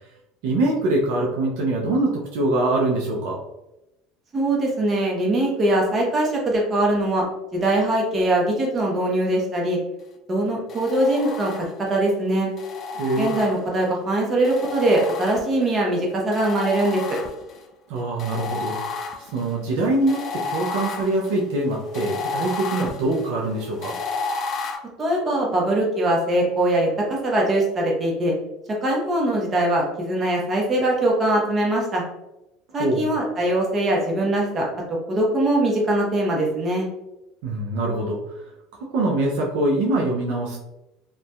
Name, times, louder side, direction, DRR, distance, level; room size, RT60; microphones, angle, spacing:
voice 1, 0.4-3.4 12.9-13.4 17.9-19.1 19.3-24.0 32.8-33.1 37.4-38.5 38.9-40.6, right 2 dB, 75° right, -1 dB, 0.4 m, -23 dB
voice 2, 4.3-7.2 7.5-9.8 10.3-12.5 13.2-17.0 25.0-28.3 28.8-32.0 32.7-34.7 35.1-36.9, right 1 dB, 30° right, -2 dB, 0.8 m, -22 dB
sound 1, 10.7-12.0 12.6-13.9 14.4-15.8 16.3-17.6 18.2-24.8, left 4 dB, 45° left, 0.4 m, -32 dB
2.5 x 2.2 x 2.3 m, 0.93 s
supercardioid pair, 90°, 0 cm